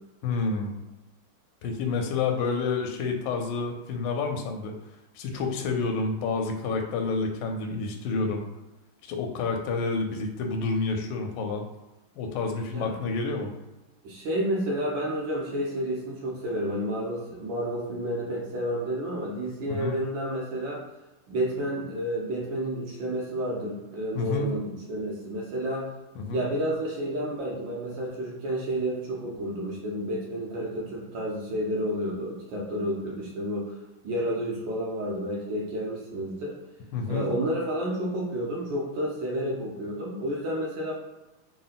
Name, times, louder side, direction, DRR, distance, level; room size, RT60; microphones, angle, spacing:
voice 1, 0.2-0.8 1.6-4.7 5.1-8.4 9.0-11.7 12.2-13.5 19.7-20.0 24.1-24.6 26.2-26.4 36.9-37.3, left 4 dB, 75° left, 3 dB, 1.1 m, -29 dB
voice 2, 14.0-20.8 21.3-25.9 26.3-33.7 34.0-36.5 37.1-40.9, equal, 70° right, -3 dB, 1.4 m, -30 dB
3.7 x 2.1 x 3.9 m, 1.0 s
omnidirectional pair, 2.4 m